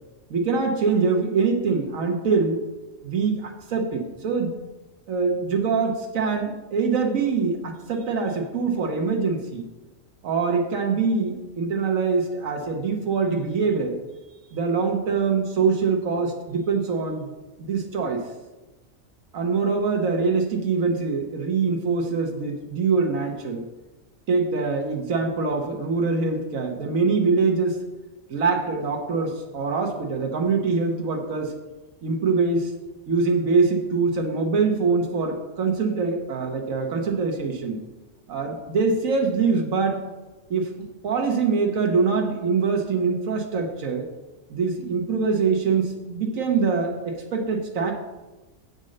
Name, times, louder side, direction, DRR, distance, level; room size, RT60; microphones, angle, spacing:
voice 1, 0.3-2.6 3.0-4.5 5.1-9.7 10.2-14.0 14.5-17.3 17.6-18.2 19.3-23.7 24.3-27.8 28.3-31.5 32.0-32.7 33.1-37.8 38.3-40.0 40.5-40.7 41.0-44.1 44.5-47.9, right 4 dB, 85° right, 2 dB, 1.4 m, -24 dB
7.5 x 5.3 x 6.4 m, 1.1 s
omnidirectional pair, 1.4 m